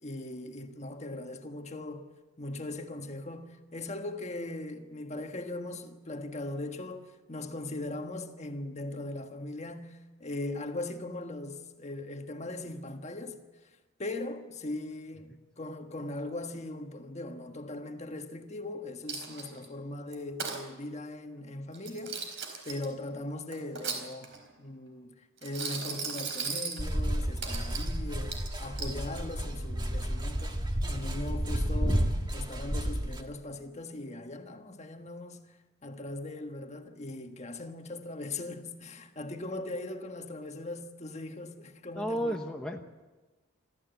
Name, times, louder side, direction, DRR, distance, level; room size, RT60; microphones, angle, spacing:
voice 1, 0.0-2.1 2.4-13.4 14.0-22.3 22.6-35.6 35.8-42.4, left 2 dB, 30° left, 1.4 m, -39 dB
Coin (dropping), 19.1-19.6 20.1-20.6 21.7-22.9 23.5-24.4 25.4-26.8 27.4-27.9 28.3-29.0, right 5 dB, 55° right, 4.3 m, -37 dB
sound 1, 26.8-33.2, equal, 20° right, 1.6 m, -31 dB
voice 2, 42.0-42.8, equal, 5° left, 0.9 m, -32 dB
25.5 x 14.0 x 8.1 m
head